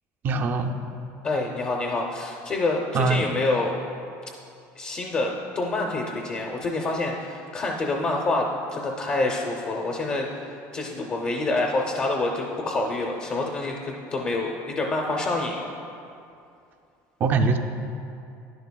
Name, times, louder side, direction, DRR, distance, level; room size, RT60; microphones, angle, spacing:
voice 1, 0.2-0.7 2.9-3.3 17.2-17.6, right 4 dB, 30° right, 6 dB, 0.4 m, -22 dB
voice 2, 1.2-3.7 4.8-15.7, left 2 dB, 25° left, 0 dB, 0.5 m, -27 dB
11.0 x 10.5 x 2.2 m, 2.6 s
cardioid pair, 180°, 7 cm